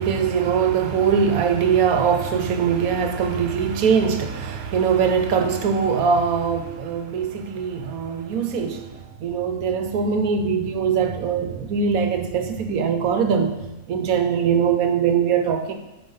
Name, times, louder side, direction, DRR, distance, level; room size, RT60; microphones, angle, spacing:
voice 1, 0.0-8.9 9.2-13.6 13.9-15.7, right 6 dB, 70° right, 6 dB, 1.2 m, -22 dB
8.8 x 5.3 x 5.6 m, 0.98 s
omnidirectional pair, 1.6 m